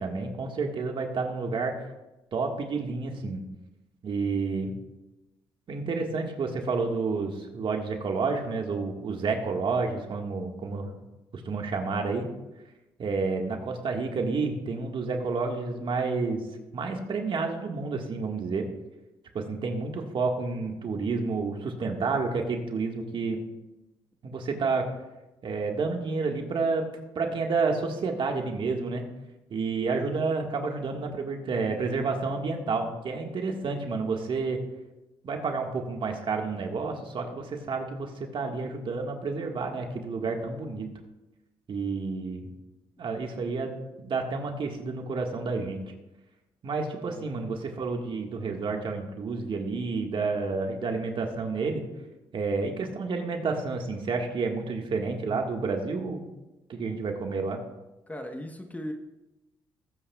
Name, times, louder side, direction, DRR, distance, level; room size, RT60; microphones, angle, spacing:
voice 1, 0.0-1.9 2.3-3.4 4.0-4.7 5.7-10.9 11.3-12.3 13.0-16.5 16.7-18.7 19.3-23.4 24.2-24.9 25.4-26.9 27.1-29.0 29.5-34.6 35.2-40.9 41.7-42.5 43.0-43.7 44.0-45.8 46.6-51.8 52.3-56.2 56.7-57.6, right 4 dB, 55° right, 3 dB, 1.7 m, -30 dB
voice 2, 58.1-58.9, left 1 dB, 15° left, 5 dB, 1.2 m, -38 dB
19.0 x 8.9 x 2.4 m, 1.0 s
cardioid pair, 75°, 10 cm